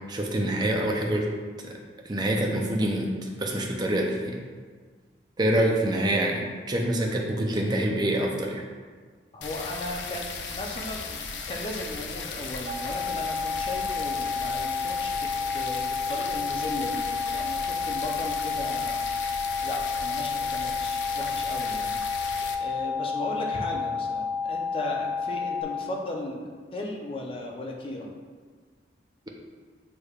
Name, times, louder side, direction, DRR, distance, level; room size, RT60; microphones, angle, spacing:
voice 1, 0.1-1.3 1.6-1.8 2.0-3.1 3.4-4.3 5.4-8.6, right 1 dB, 25° right, 0 dB, 0.5 m, -26 dB
voice 2, 9.3-15.1 15.5-19.0 19.6-22.0 22.6-28.1, left 1 dB, 30° left, -1 dB, 0.5 m, -36 dB
sound 1, 9.4-22.5, left 5 dB, 85° left, 0.4 m, -36 dB
sound 2, 12.7-25.6, left 5 dB, 90° right, 0.5 m, -30 dB
6.2 x 3.3 x 2.4 m, 1.5 s
head